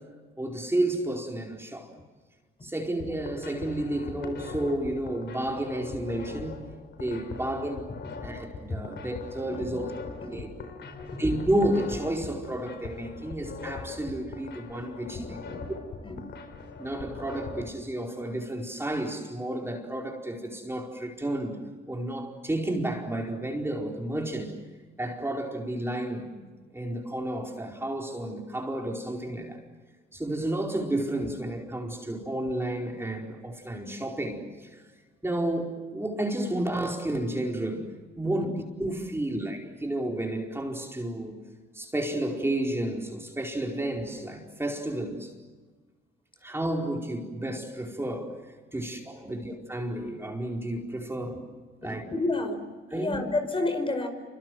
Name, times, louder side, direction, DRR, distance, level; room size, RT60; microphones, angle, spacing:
voice 1, 0.4-1.9 2.6-6.6 7.0-7.9 8.2-9.9 10.3-10.5 11.2-15.4 16.8-21.6 21.9-24.5 25.0-26.5 26.7-29.6 30.1-34.8 35.2-37.9 38.2-38.5 38.8-41.4 41.7-45.3 46.4-48.4 48.7-51.3 51.8-52.0 52.9-53.2, right 1 dB, 10° right, 0 dB, 4.8 m, -31 dB
sound 1, 2.9-17.6, left 4 dB, 65° left, 4.2 m, -41 dB
voice 2, 9.5-9.8 10.2-10.4 10.8-11.2 15.0-15.6 16.0-16.2 38.4-38.5 51.1-51.2 51.8-52.6 52.9-54.1, left 2 dB, 25° left, 6 dB, 5.4 m, -31 dB
29.0 x 26.0 x 7.9 m, 1.4 s
cardioid pair, 90°, 20 cm